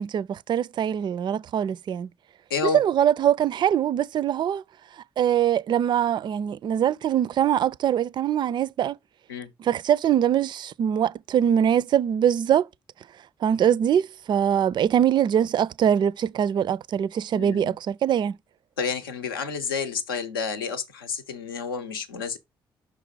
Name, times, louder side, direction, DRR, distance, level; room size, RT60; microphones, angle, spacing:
voice 1, 0.0-2.1 2.7-4.6 5.2-9.0 9.6-12.7 13.4-18.4, right 9 dB, 40° right, 0.3 m, -23 dB
voice 2, 2.5-2.8 9.3-9.5 17.3-17.8 18.8-22.4, left 5 dB, 80° left, 0.7 m, -30 dB
5.9 x 4.1 x 4.6 m
figure-of-eight pair, 40°, 12 cm